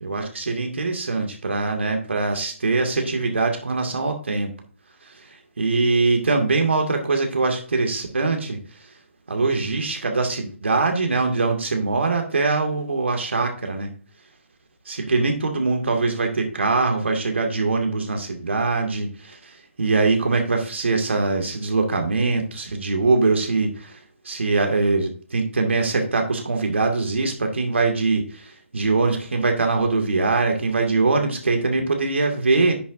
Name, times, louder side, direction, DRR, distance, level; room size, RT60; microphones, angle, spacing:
voice 1, 0.0-4.5 5.0-8.9 9.3-13.9 14.9-24.0 24.2-32.7, right 3 dB, 60° right, 3 dB, 2.1 m, -22 dB
10.0 x 7.3 x 2.6 m, 0.42 s
figure-of-eight pair, 150°, 7 cm